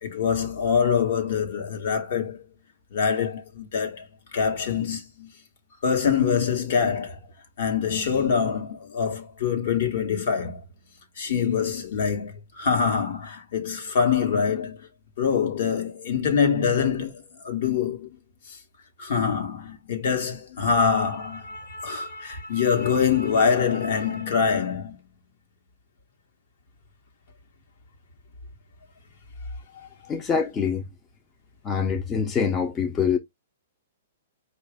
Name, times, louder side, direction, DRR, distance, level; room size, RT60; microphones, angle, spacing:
voice 1, 0.0-2.4 2.9-4.1 4.3-5.3 5.8-7.2 7.6-10.6 11.2-14.8 15.2-18.1 19.0-25.0 29.8-29.9, left 6 dB, 55° left, 1.2 m, -24 dB
voice 2, 30.1-30.8 31.6-33.2, left 6 dB, 15° left, 0.5 m, -24 dB
4.9 x 2.5 x 3.4 m
hypercardioid pair, 160°, 0 cm